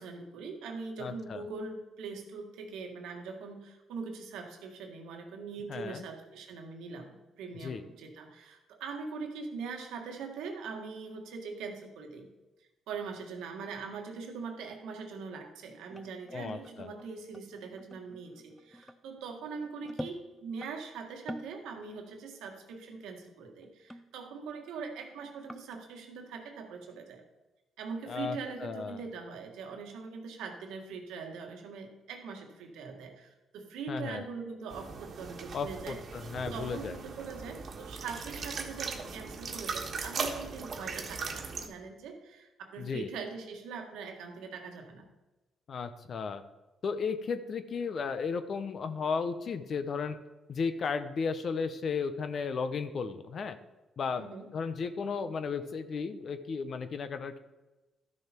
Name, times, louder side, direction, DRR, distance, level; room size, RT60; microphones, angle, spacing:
voice 1, 0.0-12.3 12.9-27.2 27.8-36.0 36.5-45.1 54.2-54.5, right 5 dB, 90° right, 3 dB, 1.6 m, -42 dB
voice 2, 1.0-1.4 5.7-6.1 7.6-7.8 16.3-16.9 28.1-29.0 33.9-34.3 35.5-37.0 42.8-43.1 45.7-46.4 46.8-50.2 50.5-53.6 54.0-57.4, left 5 dB, 55° left, 11 dB, 0.8 m, -34 dB
sound 1, 15.9-20.7 21.1-21.6 21.9-22.2 22.5-22.6 23.6-24.8 25.0-25.8, equal, 5° left, 0.6 m, -47 dB
sound 2, 34.7-41.7, right 4 dB, 50° right, 1.5 m, -39 dB
12.5 x 6.4 x 4.5 m, 1.1 s
cardioid pair, 90°, 0 cm